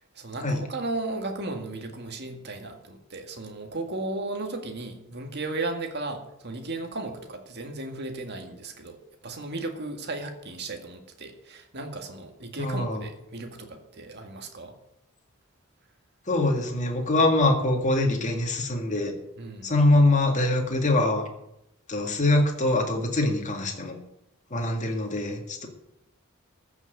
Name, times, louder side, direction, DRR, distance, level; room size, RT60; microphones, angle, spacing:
voice 1, 0.2-9.0 9.2-14.7 19.4-19.7, right 2 dB, 55° right, 4 dB, 2.0 m, -35 dB
voice 2, 12.6-13.1 16.3-19.1 19.6-21.3 21.9-24.0 24.5-25.7, left 2 dB, 35° left, 2 dB, 2.1 m, -23 dB
14.0 x 6.2 x 8.1 m, 0.83 s
head